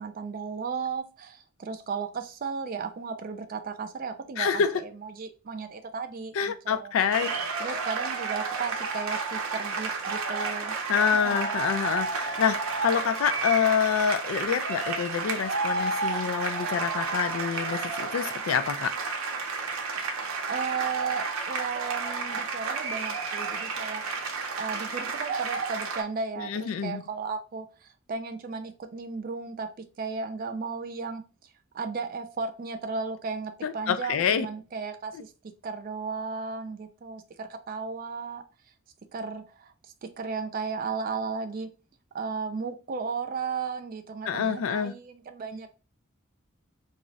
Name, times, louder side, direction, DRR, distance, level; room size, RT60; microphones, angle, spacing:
voice 1, 0.0-6.9 7.6-10.8 11.2-11.4 20.4-24.0 24.5-31.2 31.7-35.3 35.6-38.4 39.1-39.7 40.0-41.7 42.1-45.7, right 5 dB, 45° right, 0.4 m, -35 dB
voice 2, 4.4-4.8 6.3-7.7 10.9-18.9 26.4-27.0 33.6-34.5 44.3-44.9, left 7 dB, 75° left, 0.3 m, -27 dB
sound 1, 7.1-26.0, right 4 dB, 90° right, 0.6 m, -31 dB
2.4 x 2.0 x 3.8 m
head